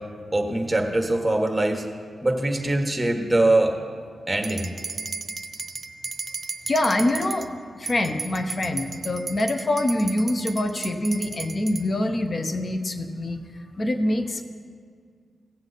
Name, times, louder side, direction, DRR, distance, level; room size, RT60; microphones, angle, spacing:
voice 1, 0.3-1.8 2.2-3.7 4.3-4.7, right 2 dB, 10° right, 3 dB, 1.5 m, -22 dB
sound 1, 4.4-7.5 7.9-11.9, right 4 dB, 45° right, 0.6 m, -35 dB
voice 2, 6.7-7.5 7.7-13.4 13.8-14.4, left 1 dB, 40° left, 7 dB, 0.9 m, -25 dB
16.5 x 7.3 x 4.1 m, 2.1 s
cardioid pair, 75°, 0 cm